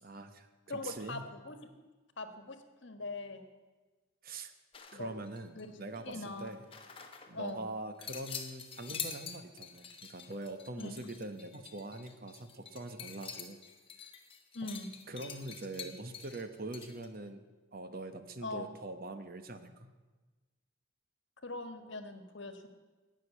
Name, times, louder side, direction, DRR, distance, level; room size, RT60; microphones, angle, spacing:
voice 1, 0.0-1.3 4.2-4.5 4.9-6.6 7.3-13.6 14.6-14.7 15.1-17.4 17.7-19.9, right 2 dB, 45° right, 9 dB, 1.0 m, -43 dB
voice 2, 0.7-1.6 2.2-3.5 4.9-6.5 7.3-7.7 10.8-10.9 14.5-14.9 18.4-18.7 21.4-22.7, left 2 dB, 60° left, 8 dB, 1.4 m, -42 dB
sound 1, 4.7-5.7 5.9-7.5 8.0-17.1, left 7 dB, 25° left, 1.1 m, -46 dB
18.0 x 6.6 x 8.4 m, 1.3 s
head